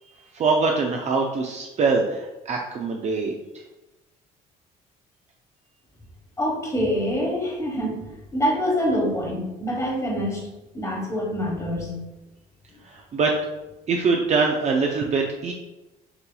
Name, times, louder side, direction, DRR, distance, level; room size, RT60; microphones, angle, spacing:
voice 1, 0.3-3.4 12.9-13.3 13.9-15.5, right 4 dB, 40° right, 1 dB, 0.5 m, -23 dB
voice 2, 6.4-8.1 8.3-10.4 10.7-12.0, equal, 20° left, 0 dB, 1.3 m, -25 dB
6.8 x 2.8 x 2.3 m, 1.0 s
cardioid pair, 110°, 17 cm